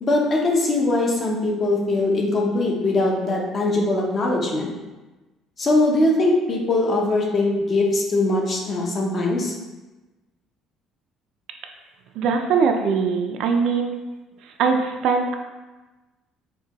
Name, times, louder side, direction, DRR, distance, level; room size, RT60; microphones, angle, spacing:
voice 1, 0.0-4.7 5.6-9.5, left 2 dB, 30° left, -1 dB, 0.6 m, -21 dB
voice 2, 12.1-13.9 14.4-15.4, right 5 dB, 60° right, 4 dB, 0.3 m, -21 dB
4.4 x 2.2 x 2.9 m, 1.1 s
cardioid pair, 165°, 0 cm